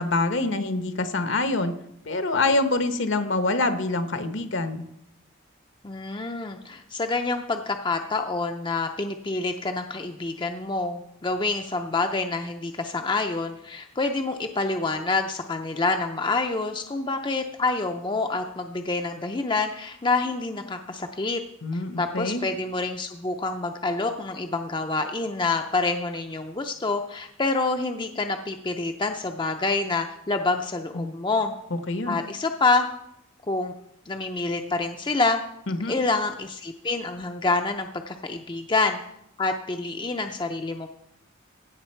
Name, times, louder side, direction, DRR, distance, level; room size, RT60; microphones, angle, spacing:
voice 1, 0.0-1.7 2.1-4.8 21.6-22.4 30.9-31.1 31.7-32.2 35.7-36.0, left 2 dB, 65° left, 9 dB, 1.0 m, -25 dB
voice 2, 5.8-21.4 22.0-31.5 32.1-32.9 33.5-33.7 34.1-35.4 35.9-39.0 39.4-40.9, left 3 dB, 25° left, 5 dB, 0.5 m, -27 dB
16.0 x 6.1 x 4.5 m, 0.76 s
head